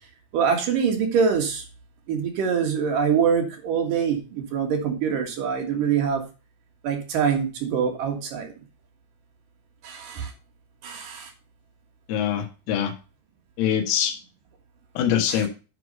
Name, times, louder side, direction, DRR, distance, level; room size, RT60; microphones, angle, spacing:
voice 1, 0.3-1.6 2.1-6.2 6.8-8.5 9.8-10.3 10.8-11.3 15.3-15.5, right 7 dB, 60° right, 2 dB, 2.5 m, -24 dB
voice 2, 12.1-12.9 13.6-14.1 15.0-15.5, left 9 dB, 90° left, 4 dB, 4.3 m, -23 dB
10.5 x 4.9 x 5.4 m, 0.32 s
omnidirectional pair, 5.9 m